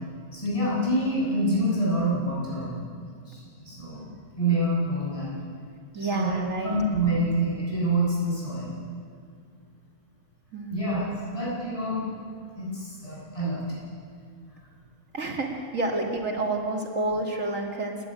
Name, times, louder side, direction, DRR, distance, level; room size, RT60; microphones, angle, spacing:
voice 1, 0.3-2.7 3.0-5.3 6.0-6.4 6.6-8.8 10.7-11.0 11.3-12.1 12.6-13.9, right 1 dB, 25° left, -7 dB, 8.2 m, -27 dB
voice 2, 5.9-6.8 10.5-11.0 11.3-11.4 15.1-18.0, right 2 dB, 85° right, 0 dB, 3.0 m, -29 dB
28.5 x 11.5 x 9.3 m, 2.2 s
omnidirectional pair, 1.3 m